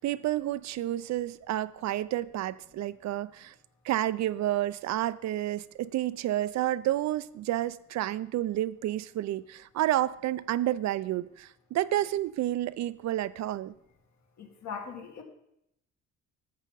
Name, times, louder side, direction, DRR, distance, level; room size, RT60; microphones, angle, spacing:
voice 1, 0.0-3.5 3.8-13.7, right 13 dB, 65° right, 0.4 m, -30 dB
voice 2, 14.4-15.2, left 6 dB, 65° left, 1.9 m, -40 dB
10.5 x 7.3 x 4.0 m
cardioid pair, 90°, 30 cm